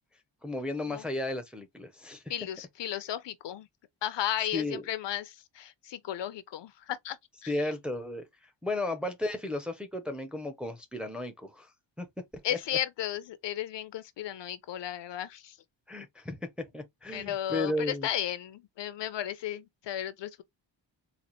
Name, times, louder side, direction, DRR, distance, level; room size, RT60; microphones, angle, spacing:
voice 1, 0.4-2.2 4.5-4.8 7.5-11.7 12.0-12.1 12.5-12.6 15.9-18.1, left 2 dB, ahead, 0.5 m, -34 dB
voice 2, 2.3-3.7 4.0-7.2 7.4-7.5 12.4-15.6 17.1-20.4, left 11 dB, 65° left, 0.6 m, -34 dB
4.0 x 2.4 x 2.9 m
wide cardioid pair, 160°, 46 cm